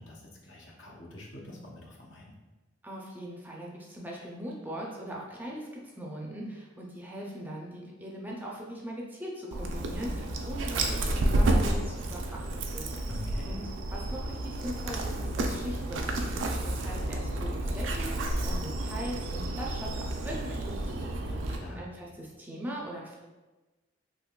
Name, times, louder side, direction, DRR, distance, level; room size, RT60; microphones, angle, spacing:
voice 1, 0.0-2.3 13.1-13.6 21.5-21.9, left 1 dB, 70° left, -2 dB, 0.7 m, -45 dB
voice 2, 2.8-13.1 13.5-23.2, equal, 10° right, -3 dB, 0.4 m, -40 dB
Dog, 9.5-21.6, right 1 dB, 75° right, 0.4 m, -31 dB
3.6 x 2.9 x 2.3 m, 1.2 s
head